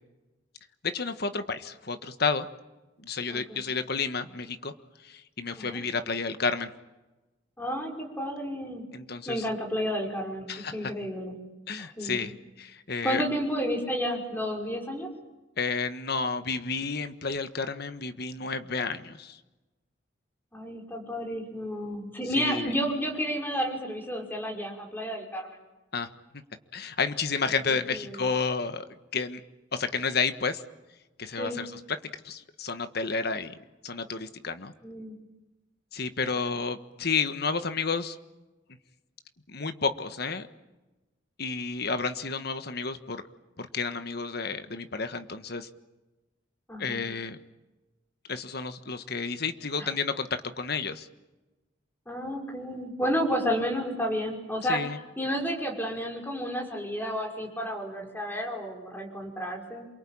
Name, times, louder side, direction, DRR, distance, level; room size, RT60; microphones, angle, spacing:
voice 1, 0.8-2.5 3.0-4.7 5.0-6.7 8.9-9.4 10.5-10.9 11.7-13.2 15.6-19.4 22.4-22.7 25.9-26.1 26.7-28.9 29.1-29.4 29.7-30.6 31.2-31.7 32.2-33.6 33.8-34.7 35.9-38.2 39.5-40.5 41.4-43.2 43.6-45.7 46.8-47.4 48.3-51.1 54.7-55.0, left 4 dB, 55° left, 9 dB, 1.5 m, -31 dB
voice 2, 7.6-8.9 9.3-11.3 12.0-12.3 13.0-15.1 20.5-25.6 27.7-28.3 31.4-31.6 34.8-35.2 46.7-47.0 49.8-49.9 52.1-54.8 55.2-59.9, equal, 10° left, 1 dB, 5.7 m, -31 dB
28.0 x 23.5 x 8.8 m, 1.1 s
head